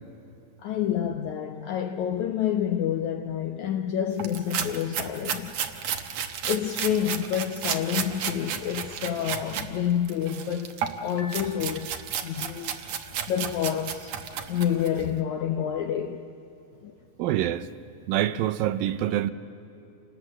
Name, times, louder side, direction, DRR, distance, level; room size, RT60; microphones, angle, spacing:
voice 1, 0.6-5.6 6.5-10.7 11.0-12.0 12.2-12.8 13.3-14.2 14.5-16.3 16.8-16.9, left 9 dB, 80° left, 1.7 m, -28 dB
sound 1, 4.2-9.7 10.0-15.0, right 8 dB, 65° right, 1.8 m, -33 dB
Piano, 11.2-12.5, left 3 dB, 60° left, 2.4 m, -47 dB
voice 2, 17.2-17.7 18.1-19.3, right 12 dB, 80° right, 2.4 m, -25 dB
27.5 x 19.5 x 7.6 m
omnidirectional pair, 4.2 m